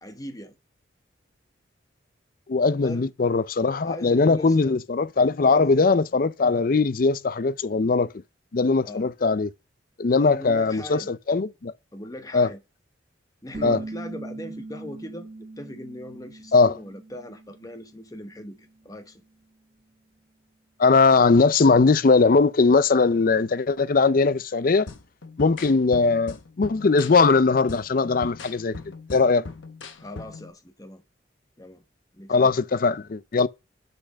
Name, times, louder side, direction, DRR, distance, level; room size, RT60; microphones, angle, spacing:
voice 1, 0.0-0.6 2.8-3.1 3.8-4.8 5.5-5.7 8.8-9.1 10.2-11.1 11.9-12.6 13.4-19.2 29.9-31.0 31.6-31.8 32.1-32.5, left 1 dB, 20° left, 1.0 m, -39 dB
voice 2, 2.5-8.1 8.5-9.5 10.0-11.7 12.3-12.5 13.6-13.8 16.5-16.8 20.8-24.9 25.4-28.8 29.1-29.4 32.3-33.5, left 4 dB, 50° left, 0.5 m, -20 dB
sound 1, 13.5-18.9, right 2 dB, 40° right, 0.6 m, -41 dB
sound 2, 24.9-30.5, left 3 dB, 80° left, 0.9 m, -41 dB
6.7 x 5.9 x 6.4 m
head